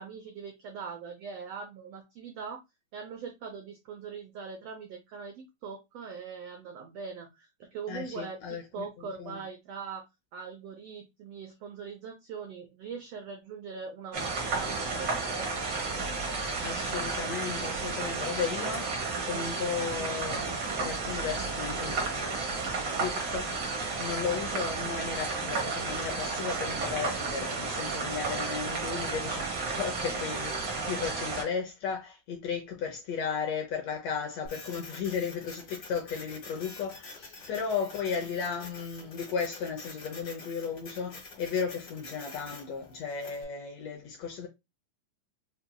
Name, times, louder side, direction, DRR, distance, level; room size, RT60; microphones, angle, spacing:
voice 1, 0.0-2.6 2.9-8.4 8.7-10.0 10.3-15.6, right 5 dB, 85° right, 1.3 m, -41 dB
voice 2, 7.9-8.9 9.2-9.4 16.6-44.5, left 6 dB, 75° left, 1.6 m, -35 dB
sound 1, 14.1-31.4, right 4 dB, 55° right, 1.3 m, -32 dB
Printer, 34.4-43.4, left 3 dB, 45° left, 1.3 m, -47 dB
5.6 x 2.7 x 2.2 m
omnidirectional pair, 3.6 m